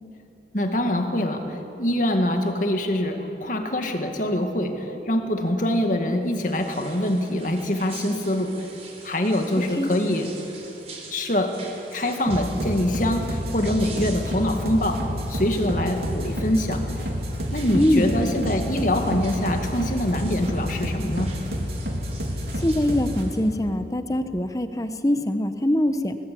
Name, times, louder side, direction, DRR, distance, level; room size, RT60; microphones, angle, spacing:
voice 1, 0.5-8.7 9.0-10.3 11.1-11.6 11.9-16.9 17.5-21.4, left 1 dB, 45° left, 4 dB, 2.1 m, -24 dB
sound 1, 6.3-23.4, right 4 dB, 35° right, 4.0 m, -46 dB
sound 2, 12.3-23.2, equal, 60° right, 3.0 m, -29 dB
voice 2, 17.7-18.1 22.6-26.2, left 1 dB, 20° left, 9 dB, 1.0 m, -23 dB
22.0 x 19.0 x 8.5 m, 3.0 s
head